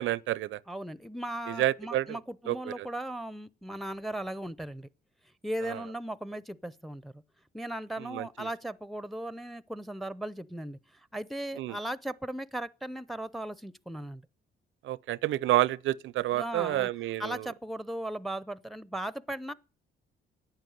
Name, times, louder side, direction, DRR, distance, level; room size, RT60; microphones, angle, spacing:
voice 1, 0.0-0.6 1.5-2.2 2.5-2.9 5.7-5.8 8.0-8.5 11.6-11.8 14.8-17.5, right 15 dB, 80° right, 0.6 m, -29 dB
voice 2, 0.7-4.9 5.4-7.2 7.5-10.8 11.1-14.2 16.3-16.9 17.2-19.5, right 1 dB, ahead, 0.7 m, -37 dB
11.5 x 9.1 x 9.3 m
cardioid pair, 90°, 20 cm